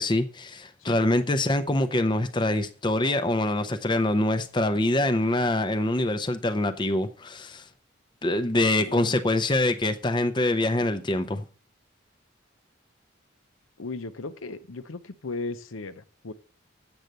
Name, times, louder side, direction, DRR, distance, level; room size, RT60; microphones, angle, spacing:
voice 1, 0.0-7.6 8.2-11.4, left 1 dB, 20° left, 0.6 m, -25 dB
voice 2, 13.8-16.3, left 3 dB, 85° left, 0.8 m, -36 dB
7.9 x 7.6 x 6.7 m
head